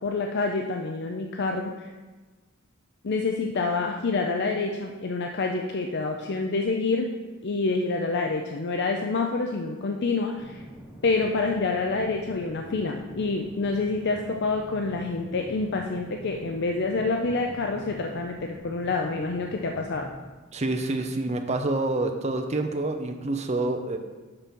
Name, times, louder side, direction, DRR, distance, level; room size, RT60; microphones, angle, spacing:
voice 1, 0.0-1.9 3.0-7.1 7.4-10.6 11.0-20.1, left 3 dB, 55° left, 3 dB, 0.5 m, -27 dB
sound 1, 10.3-20.1, equal, ahead, 1.2 m, -45 dB
voice 2, 20.5-24.0, right 2 dB, 35° right, 5 dB, 0.7 m, -27 dB
6.8 x 6.0 x 5.3 m, 1.3 s
head